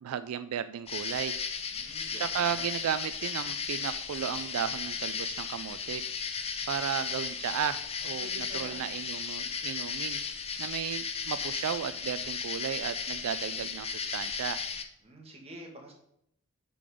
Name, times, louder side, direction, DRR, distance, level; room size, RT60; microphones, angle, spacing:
voice 1, 0.0-1.4 2.2-6.1 6.7-14.6, right 9 dB, 80° right, 12 dB, 0.3 m, -34 dB
sound 1, 0.9-14.8, left 6 dB, 30° left, 0.6 m, -35 dB
voice 2, 1.7-2.2 2.5-2.7 8.2-8.8 15.0-15.9, equal, 30° right, 0 dB, 1.7 m, -47 dB
8.4 x 3.9 x 4.9 m, 0.74 s
head